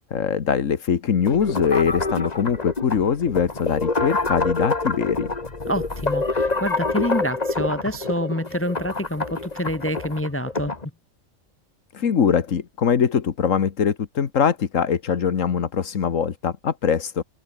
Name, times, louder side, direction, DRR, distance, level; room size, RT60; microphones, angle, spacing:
voice 1, 0.1-5.3 11.9-17.2, left 7 dB, 80° left, 1.7 m, -22 dB
sound 1, 1.3-10.8, left 3 dB, 30° left, 2.0 m, -27 dB
voice 2, 5.7-10.8, equal, 10° left, 0.9 m, -27 dB
omnidirectional pair, 1.3 m